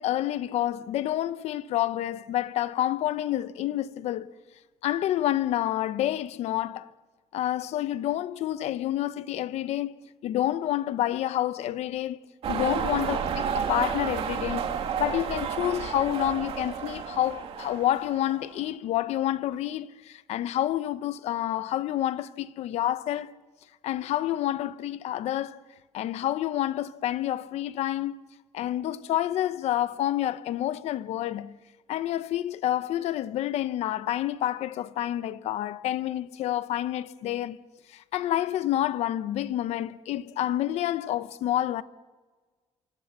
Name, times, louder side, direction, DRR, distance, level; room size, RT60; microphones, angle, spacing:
voice 1, 0.0-4.3 4.8-6.9 7.3-9.9 10.2-12.2 12.5-14.7 15.0-23.3 23.8-25.6 25.9-28.2 28.5-31.6 31.9-37.6 37.9-41.8, left 13 dB, 75° left, 0.9 m, -28 dB
sound 1, 12.4-18.6, right 7 dB, 60° right, 2.7 m, -31 dB
27.0 x 24.0 x 7.4 m
cardioid pair, 150°, 11 cm